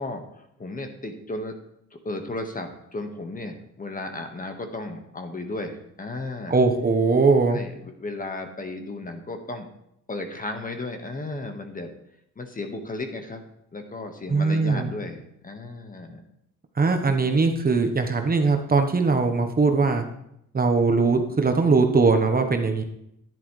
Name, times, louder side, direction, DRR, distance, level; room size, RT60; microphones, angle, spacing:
voice 1, 0.0-1.5 2.0-6.6 7.5-9.7 10.1-11.9 12.4-13.4 13.7-16.2, left 2 dB, 25° left, 5 dB, 1.6 m, -34 dB
voice 2, 6.5-7.6 14.3-14.9 16.8-20.1 20.5-22.8, right 4 dB, 30° right, 5 dB, 1.2 m, -20 dB
10.5 x 10.5 x 3.3 m, 0.76 s
cardioid pair, 90°, 30 cm